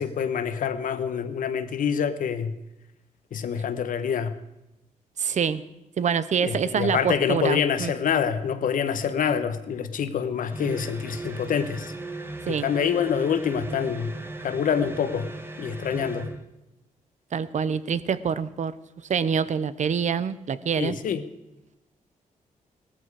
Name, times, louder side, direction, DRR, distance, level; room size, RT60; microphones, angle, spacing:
voice 1, 0.0-2.5 3.3-4.3 6.4-11.9 12.5-14.1 14.4-15.3 15.6-16.3 20.8-21.2, left 7 dB, 80° left, 11 dB, 1.1 m, -26 dB
voice 2, 5.2-5.6 6.0-7.9 12.5-12.7 17.3-18.7 19.1-21.0, right 7 dB, 60° right, 15 dB, 0.8 m, -26 dB
sound 1, 10.5-16.4, right 2 dB, 15° right, 1.5 m, -37 dB
17.0 x 13.5 x 4.8 m, 0.93 s
cardioid pair, 80°, 14 cm